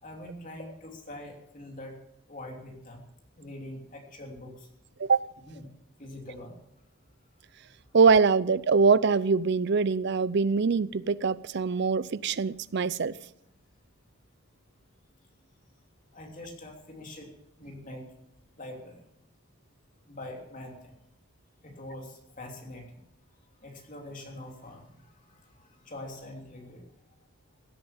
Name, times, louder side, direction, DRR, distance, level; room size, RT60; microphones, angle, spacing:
voice 1, 0.0-1.9 2.3-3.0 3.4-4.7 5.5-5.7 6.0-6.5 16.1-17.3 17.6-18.1 18.6-19.0 20.1-20.9 21.6-22.8 23.6-26.8, left 1 dB, 40° left, 3.1 m, -44 dB
voice 2, 7.9-13.1, right 5 dB, 55° right, 0.5 m, -23 dB
16.0 x 8.8 x 7.2 m
head